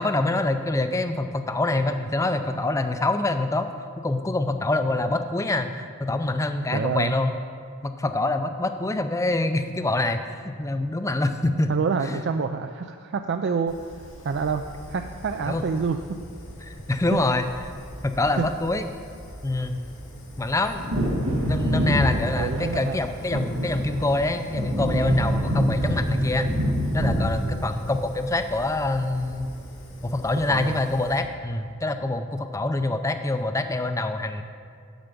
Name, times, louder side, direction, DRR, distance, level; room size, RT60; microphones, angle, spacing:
voice 1, 0.0-3.7 4.0-7.3 7.8-11.7 15.5-15.6 16.6-17.4 18.0-18.8 19.4-19.8 20.4-20.8 21.5-26.5 26.9-29.5 30.0-34.4, left 2 dB, 15° left, 8 dB, 0.4 m, -25 dB
voice 2, 6.7-7.1 11.7-13.9 14.2-14.6 14.9-16.2 18.4-18.5 22.3-23.0 27.4-27.7 30.5-30.8, right 5 dB, 50° right, 6 dB, 0.3 m, -27 dB
Fire, 13.7-31.2, equal, 90° left, 2.8 m, -43 dB
Wind / Thunder, 20.7-28.9 29.2-29.3, equal, 90° right, 1.5 m, -26 dB
9.1 x 7.9 x 5.3 m, 2.2 s
head